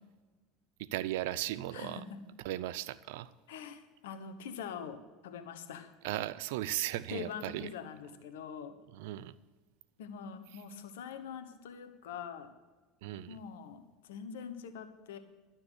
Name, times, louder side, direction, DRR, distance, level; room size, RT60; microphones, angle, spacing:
voice 1, 0.8-2.0 2.4-3.3 6.0-7.7 8.9-9.3 13.0-13.4, right 15 dB, 70° right, 17 dB, 0.5 m, -36 dB
voice 2, 1.7-2.2 3.5-5.9 7.1-8.8 10.0-12.5 13.3-15.2, left 7 dB, 75° left, 9 dB, 1.2 m, -44 dB
12.0 x 7.1 x 8.1 m, 1.3 s
hypercardioid pair, 75°, 0 cm